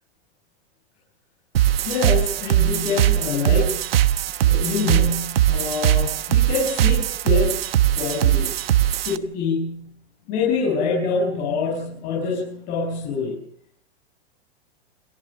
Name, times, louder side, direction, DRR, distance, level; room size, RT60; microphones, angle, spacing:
sound 1, 1.5-9.2, right 12 dB, 60° right, 1.3 m, -20 dB
voice 1, 1.8-3.8 4.4-7.5 8.0-8.5 8.9-9.8 10.3-13.4, left 5 dB, 25° left, -2 dB, 6.0 m, -25 dB
29.0 x 14.0 x 7.3 m, 0.68 s
supercardioid pair, 180°, 33 cm